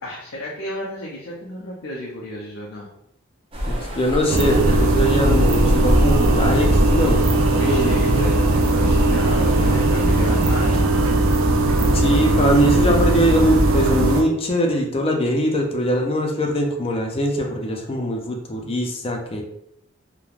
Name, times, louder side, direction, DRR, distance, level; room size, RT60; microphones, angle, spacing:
voice 1, 0.0-2.9 7.5-10.9, left 1 dB, 85° left, -3 dB, 0.5 m, -33 dB
sound 1, 3.5-10.8, equal, 30° right, 0.5 m, -24 dB
voice 2, 3.7-8.2 11.8-19.4, equal, 30° left, 1 dB, 0.4 m, -22 dB
sound 2, 4.3-14.2, right 2 dB, 85° right, 0.4 m, -18 dB
3.1 x 2.1 x 2.4 m, 0.75 s
head